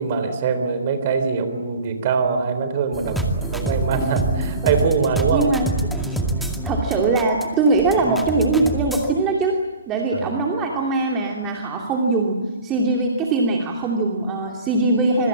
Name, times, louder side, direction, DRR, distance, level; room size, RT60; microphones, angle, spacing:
voice 1, 0.0-5.5 10.1-10.4, right 5 dB, 35° right, 8 dB, 3.9 m, -23 dB
sound 1, 2.9-9.1, right 1 dB, ahead, 2.2 m, -26 dB
voice 2, 5.3-5.7 6.6-9.6 9.9-12.4 12.6-15.3, right 3 dB, 15° right, 0 dB, 2.7 m, -21 dB
26.5 x 24.0 x 7.5 m, 1.3 s
figure-of-eight pair, 140°, 0 cm